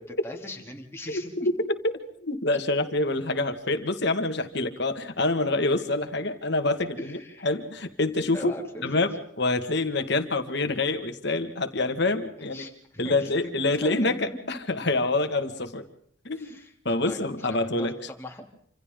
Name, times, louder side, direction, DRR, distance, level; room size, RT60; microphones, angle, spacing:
voice 1, 0.2-1.3 7.0-7.5 8.3-9.0 12.4-13.3 13.8-14.4 16.3-16.7 17.0-18.4, left 1 dB, 15° left, 1 dB, 3.2 m, -40 dB
voice 2, 1.1-1.9 2.2-8.5 8.8-9.1 9.4-12.6 13.0-15.9 16.2-16.5 16.8-17.9, left 2 dB, 60° left, 7 dB, 2.0 m, -26 dB
28.0 x 27.0 x 3.9 m, 0.67 s
head